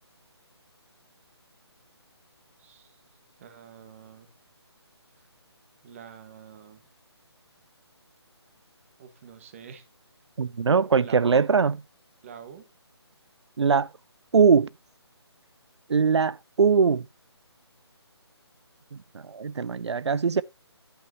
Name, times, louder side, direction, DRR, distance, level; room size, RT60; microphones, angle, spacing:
voice 1, 2.6-3.0 3.4-4.3 5.2-5.3 5.8-6.8 9.0-9.8 11.0-11.4 12.2-12.7, right 8 dB, 30° right, 1.6 m, -46 dB
voice 2, 10.4-11.8 13.6-13.9 14.3-14.7 15.9-17.0 19.1-20.4, right 5 dB, 80° right, 0.4 m, -21 dB
11.0 x 9.0 x 2.9 m
figure-of-eight pair, 155°, 14 cm